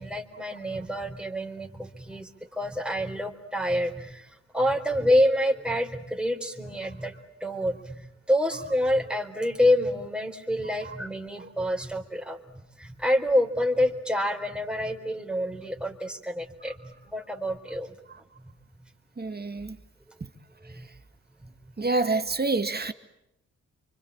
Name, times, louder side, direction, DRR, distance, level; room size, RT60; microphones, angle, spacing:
voice 1, 0.0-12.4 12.8-17.9 20.6-20.9 21.4-21.5, left 1 dB, 5° right, 4.0 m, -27 dB
voice 2, 19.2-19.8 20.2-20.3 20.6-20.9 21.8-22.9, right 3 dB, 35° right, 2.2 m, -29 dB
26.5 x 25.0 x 8.7 m
cardioid pair, 65°, 29 cm